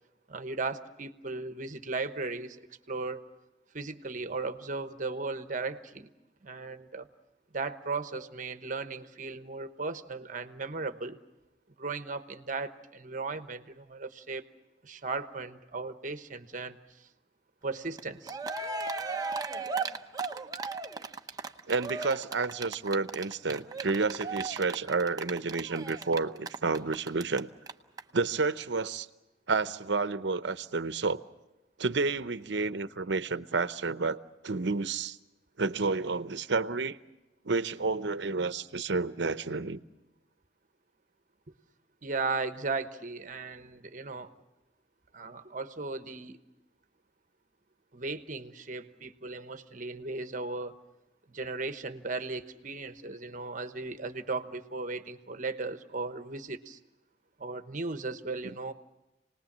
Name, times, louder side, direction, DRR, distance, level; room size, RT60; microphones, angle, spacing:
voice 1, 0.3-3.2 3.7-6.1 6.4-7.1 7.5-11.2 11.8-14.4 14.8-17.1 17.6-18.4 42.0-44.3 45.1-46.4 47.9-50.8 51.3-56.8 57.4-58.7, right 3 dB, 45° right, 9 dB, 1.1 m, -36 dB
Cheering, 18.0-18.1 18.3-27.4 27.7-27.8 28.0-28.1, right 4 dB, 20° right, 0.8 m, -36 dB
voice 2, 21.7-27.5 28.1-29.1 29.5-31.2 31.8-35.2 35.6-37.0 37.4-39.8 58.4-58.5, right 4 dB, 75° right, 13 dB, 0.8 m, -30 dB
28.5 x 19.5 x 7.4 m, 1.0 s
head